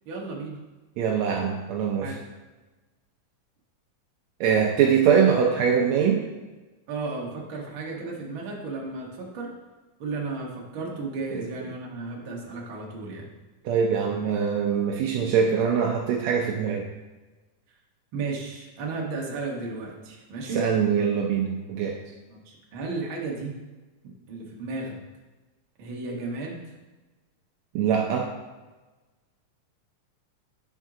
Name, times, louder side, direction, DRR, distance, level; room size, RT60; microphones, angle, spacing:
voice 1, 0.0-0.6 2.0-2.2 6.9-9.5 10.0-13.3 18.1-20.6 22.3-23.6 24.3-25.0 25.8-26.7, right 3 dB, 60° right, -2 dB, 1.4 m, -34 dB
voice 2, 1.0-2.2 4.4-6.2 13.6-16.9 20.5-22.0 27.7-28.3, right 7 dB, 85° right, 1 dB, 1.5 m, -23 dB
8.9 x 4.5 x 3.7 m, 1.2 s
omnidirectional pair, 3.8 m